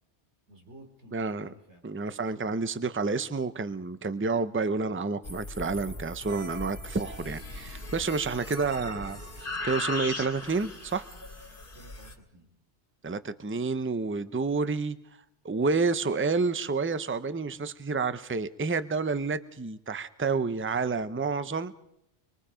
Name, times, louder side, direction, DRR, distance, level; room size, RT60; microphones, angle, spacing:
voice 1, 0.5-1.8 2.1-2.5 11.7-12.5, right 1 dB, 80° right, 2 dB, 3.9 m, -53 dB
voice 2, 1.1-1.5 1.8-9.2 9.6-11.0 13.0-15.0 15.4-21.7, right 4 dB, 15° right, 13 dB, 0.6 m, -29 dB
sound 1, 5.2-12.1, left 2 dB, 50° left, 2.5 m, -38 dB
25.5 x 22.5 x 5.0 m, 0.78 s
omnidirectional pair, 1.2 m